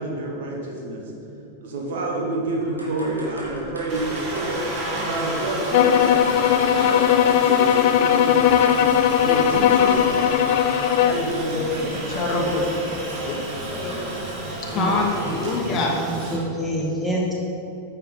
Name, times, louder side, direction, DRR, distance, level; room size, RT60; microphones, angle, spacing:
voice 1, 0.0-4.6 5.0-6.3 6.7-8.5 9.2-10.4 11.0-12.2, right 2 dB, 55° right, 0 dB, 1.4 m, -29 dB
sound 1, 2.6-15.8, right 1 dB, 80° right, 1.5 m, -41 dB
Aircraft, 3.9-16.4, right 1 dB, 40° right, 1.7 m, -32 dB
sound 2, 5.7-11.2, left 10 dB, 50° left, 0.3 m, -18 dB
voice 2, 12.1-12.9 13.2-13.3 14.6-16.0, left 2 dB, 30° left, -1 dB, 1.2 m, -25 dB
voice 3, 15.7-17.4, equal, 5° right, -4 dB, 1.8 m, -27 dB
9.0 x 5.8 x 3.8 m, 2.8 s
figure-of-eight pair, 90°, 0 cm